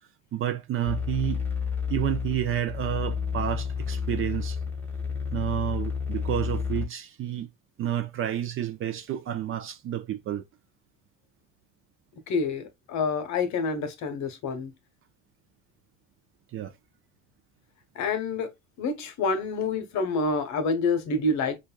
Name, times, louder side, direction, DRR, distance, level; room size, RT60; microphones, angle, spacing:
voice 1, 0.3-1.4 1.9-4.6 5.3-7.5 7.8-10.4 16.5-16.7, right 11 dB, 35° right, 0.5 m, -30 dB
sound 1, 0.8-6.9, left 6 dB, 5° left, 1.0 m, -31 dB
voice 2, 12.3-14.7 18.0-18.5 18.8-21.6, left 3 dB, 45° left, 0.8 m, -27 dB
5.0 x 2.3 x 2.2 m
hypercardioid pair, 70°, 39 cm